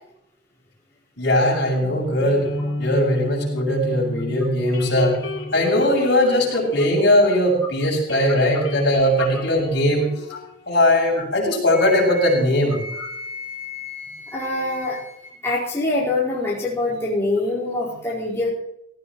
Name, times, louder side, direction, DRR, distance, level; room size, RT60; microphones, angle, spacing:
voice 1, 1.2-2.5 2.8-5.2 5.5-10.2 10.7-12.8, left 1 dB, 60° left, -2 dB, 7.1 m, -19 dB
sound 1, 1.8-7.6 7.9-11.3, left 2 dB, 90° left, 3.4 m, -33 dB
Wind instrument woodwind instrument, 11.7-15.4, left 3 dB, 45° left, 4.3 m, -36 dB
voice 2, 14.3-15.0 15.4-18.5, left 2 dB, 15° left, -9 dB, 4.8 m, -24 dB
18.0 x 17.0 x 3.2 m, 0.78 s
head